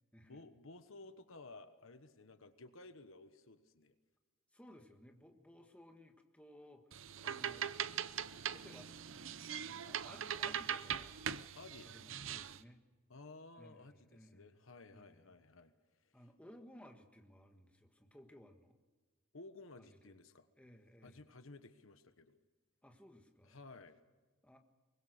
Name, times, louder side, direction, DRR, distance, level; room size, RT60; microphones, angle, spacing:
voice 1, 0.2-4.0 11.5-11.9 13.1-15.7 16.0-16.1 19.3-20.5 21.0-22.4 23.4-24.0, left 3 dB, 70° left, 10 dB, 1.3 m, -55 dB
voice 2, 4.5-7.7 8.5-8.9 9.8-11.2 11.8-12.8 13.6-14.5 14.9-15.3 16.1-18.8 19.8-20.2 20.6-21.2 22.8-23.6 24.4-24.6, equal, 5° left, 4 dB, 1.6 m, -59 dB
sound 1, 6.9-12.6, right 8 dB, 65° right, 0.7 m, -41 dB
23.5 x 21.0 x 6.6 m, 1.3 s
head